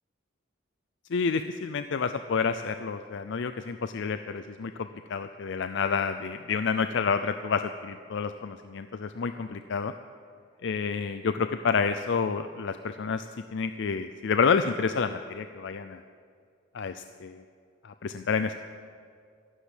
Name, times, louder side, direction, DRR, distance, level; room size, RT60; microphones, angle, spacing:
voice 1, 1.1-9.9 10.6-13.3 13.5-16.0 16.7-17.4 17.8-18.6, left 5 dB, 65° left, 10 dB, 0.5 m, -29 dB
13.5 x 12.0 x 7.5 m, 2.2 s
head